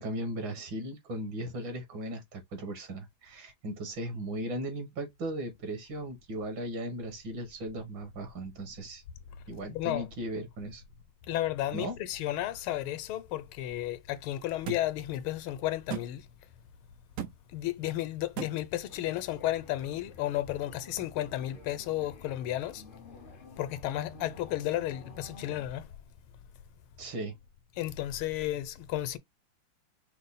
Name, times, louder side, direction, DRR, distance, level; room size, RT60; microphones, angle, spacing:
voice 1, 0.0-9.0 9.5-10.8 11.7-12.0 27.0-27.4, right 1 dB, 65° right, 2.0 m, -37 dB
voice 2, 9.7-10.1 11.3-16.2 17.5-22.8 23.6-25.9 27.8-29.2, left 14 dB, 85° left, 1.5 m, -33 dB
sound 1, 14.7-14.8 15.9-16.1 17.2-17.3 18.4-18.5, right 9 dB, 90° right, 0.7 m, -35 dB
sound 2, 18.9-25.7, left 3 dB, 50° left, 0.6 m, -51 dB
5.4 x 2.0 x 4.1 m
omnidirectional pair, 2.3 m